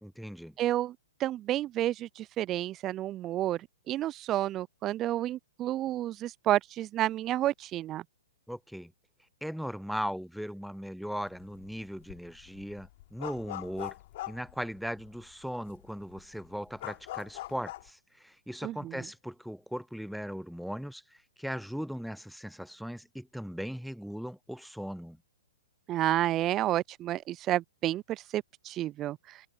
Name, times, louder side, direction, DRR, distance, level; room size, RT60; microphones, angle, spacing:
voice 1, 0.0-0.5 8.5-8.9 9.4-13.9 14.3-25.2, equal, ahead, 0.7 m, -38 dB
voice 2, 0.6-8.0 18.6-19.1 25.9-29.4, right 13 dB, 30° right, 0.4 m, -30 dB
sound 1, 11.3-11.7 12.0-15.2 15.7-15.8 16.0-17.9, left 16 dB, 50° left, 3.4 m, -41 dB
hypercardioid pair, 120°, 0 cm